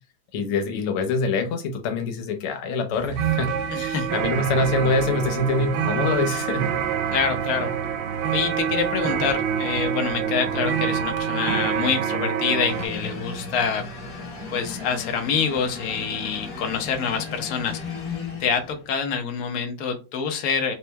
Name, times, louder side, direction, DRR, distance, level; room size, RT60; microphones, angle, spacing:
voice 1, 0.3-6.7 10.4-10.7, left 3 dB, 90° left, 6 dB, 1.7 m, -25 dB
sound 1, 2.9-12.9, right 8 dB, 85° right, 1.5 m, -26 dB
voice 2, 3.7-4.1 7.1-7.7 8.3-13.8 14.5-17.8 18.4-20.7, left 6 dB, 75° left, 5 dB, 0.8 m, -26 dB
sound 2, 12.7-19.0, left 4 dB, 50° left, 1.3 m, -35 dB
4.2 x 3.0 x 2.2 m, 0.30 s
omnidirectional pair, 2.4 m